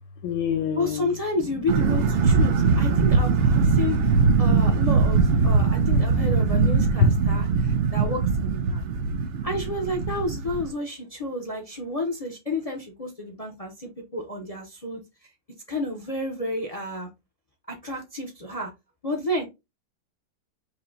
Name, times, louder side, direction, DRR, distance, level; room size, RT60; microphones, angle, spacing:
voice 1, 0.2-4.7 5.0-7.3, left 6 dB, 75° left, 1.2 m, -31 dB
voice 2, 0.8-4.0 4.4-8.9 9.4-15.0 15.7-17.1 17.7-18.7 19.0-19.4, left 2 dB, 40° left, 0.5 m, -31 dB
sound 1, 1.7-10.7, right 5 dB, 90° right, 0.6 m, -21 dB
5.5 x 2.2 x 3.8 m
omnidirectional pair, 2.0 m